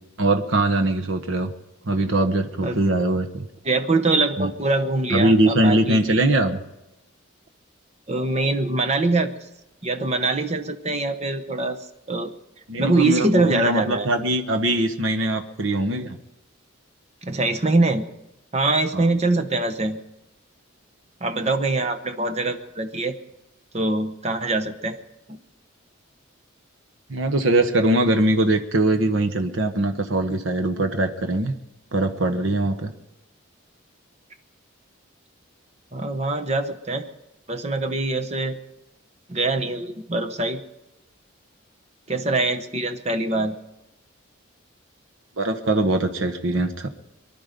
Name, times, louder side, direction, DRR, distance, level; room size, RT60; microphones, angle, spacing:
voice 1, 0.2-1.5 1.9-3.5 4.4-4.5 5.1-6.6 12.7-16.2 18.9-19.1 27.1-31.5 31.9-32.9 45.4-46.9, right 1 dB, 70° right, 5 dB, 1.1 m, -21 dB
voice 2, 3.6-6.2 8.1-9.3 9.8-12.3 12.8-14.1 17.2-18.1 18.5-20.0 21.2-23.2 23.7-25.0 25.3-25.4 35.9-37.1 37.5-38.6 39.3-40.6 42.1-43.6, right 2 dB, 30° right, 8 dB, 1.0 m, -23 dB
23.5 x 11.5 x 5.2 m, 0.95 s
head